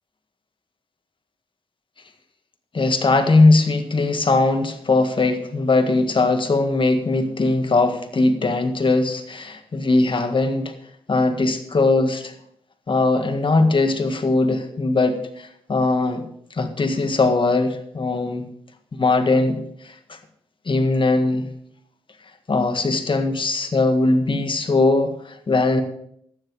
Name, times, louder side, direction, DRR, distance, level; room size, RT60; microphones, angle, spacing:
voice 1, 2.7-10.7 11.1-12.3 12.9-18.5 18.9-20.2 20.7-21.5 22.5-25.8, left 3 dB, 50° left, 7 dB, 1.7 m, -20 dB
12.0 x 9.8 x 4.8 m, 0.69 s
supercardioid pair, 40°, 11 cm